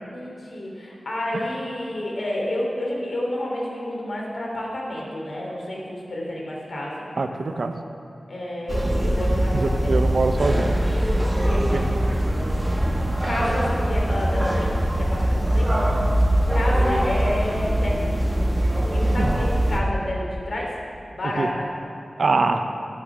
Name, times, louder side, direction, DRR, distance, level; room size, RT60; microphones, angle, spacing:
voice 1, 0.0-7.0 8.3-10.1 11.2-11.9 13.2-14.7 15.0-15.7 16.5-18.1 18.9-20.7 21.1-21.7, left 1 dB, 65° left, -3 dB, 3.0 m, -29 dB
voice 2, 7.2-7.7 9.5-10.8 11.4-11.9 19.2-19.3 21.4-21.5 22.2-22.6, right 3 dB, 70° right, 6 dB, 0.7 m, -24 dB
sound 1, 8.7-19.8, right 1 dB, 15° right, 1.4 m, -22 dB
11.5 x 8.6 x 6.0 m, 2.4 s
wide cardioid pair, 80°, 0 cm